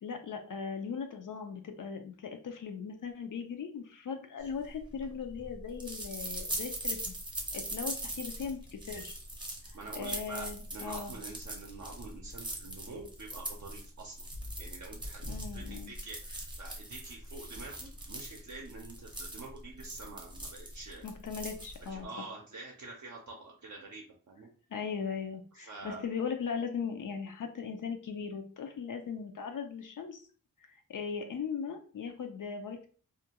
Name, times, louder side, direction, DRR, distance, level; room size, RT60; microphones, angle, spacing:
voice 1, 0.0-7.0 7.5-9.1 9.9-11.1 15.3-15.9 21.0-22.1 24.7-30.3 30.9-32.9, left 6 dB, 60° left, 5 dB, 0.5 m, -38 dB
sound 1, 4.6-22.0, right 1 dB, 15° right, 0.6 m, -41 dB
voice 2, 9.7-14.3 14.6-21.0 21.9-24.5 25.5-26.0, right 3 dB, 55° right, -1 dB, 0.5 m, -46 dB
2.4 x 2.2 x 2.8 m, 0.41 s
wide cardioid pair, 115°, 36 cm